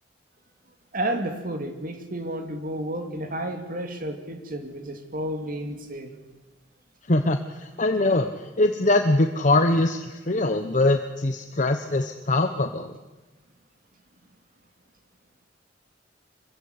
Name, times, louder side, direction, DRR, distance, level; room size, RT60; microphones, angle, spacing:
voice 1, 0.9-6.1, right 1 dB, 50° right, 6 dB, 2.7 m, -31 dB
voice 2, 7.1-8.3 8.6-13.0, left 2 dB, 40° left, 6 dB, 1.1 m, -22 dB
24.5 x 15.5 x 9.8 m, 1.2 s
head